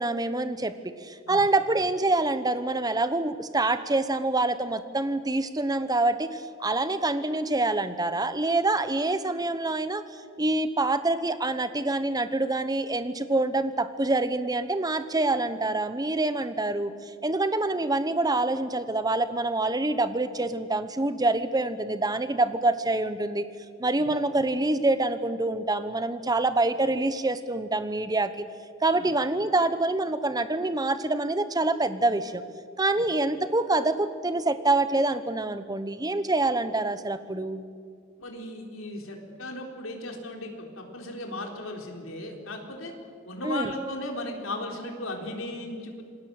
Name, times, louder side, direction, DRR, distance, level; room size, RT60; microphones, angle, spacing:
voice 1, 0.0-10.0 10.4-23.4 23.8-28.4 28.8-32.4 32.8-37.6 43.4-43.7, right 2 dB, 20° right, 11 dB, 1.1 m, -26 dB
voice 2, 38.2-42.9 43.2-46.0, left 1 dB, 85° left, 2 dB, 4.0 m, -36 dB
27.0 x 20.0 x 8.0 m, 2.2 s
head